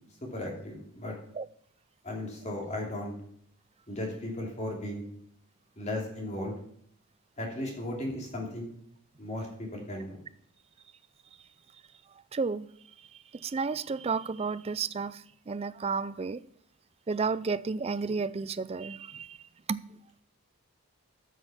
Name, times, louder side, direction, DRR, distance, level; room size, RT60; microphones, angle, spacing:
voice 1, 0.2-1.2 2.0-3.1 3.9-5.0 5.8-6.5 7.4-8.7 9.2-10.2, left 1 dB, 30° left, 2.8 m, -36 dB
voice 2, 12.3-12.7 13.1-16.4 17.1-19.4 19.7-19.8, right 4 dB, 25° right, 0.3 m, -32 dB
12.5 x 6.3 x 5.7 m
head